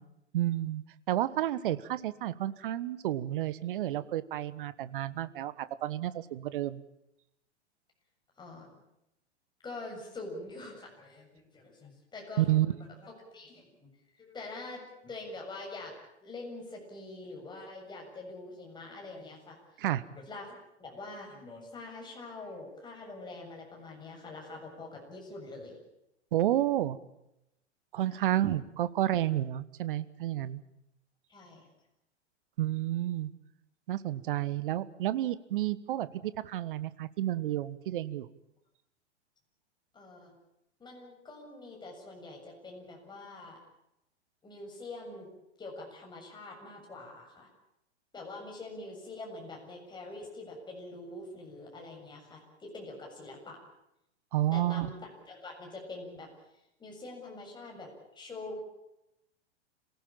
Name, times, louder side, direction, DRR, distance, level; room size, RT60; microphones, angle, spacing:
voice 1, 0.3-6.8 12.4-12.7 19.8-20.0 26.3-27.0 27.9-30.6 32.6-33.3 33.9-38.3 54.3-54.9, right 13 dB, 50° right, 16 dB, 1.3 m, -30 dB
voice 2, 8.4-8.7 9.6-13.9 14.2-15.9 16.2-19.6 20.1-25.8 28.1-28.4 31.3-31.7 39.9-40.3 40.8-43.6 44.4-45.3 45.6-47.5 48.1-53.6 54.5-54.9 55.3-58.6, left 2 dB, 10° left, 0 dB, 7.3 m, -45 dB
26.5 x 18.0 x 8.9 m, 0.87 s
figure-of-eight pair, 100°, 35 cm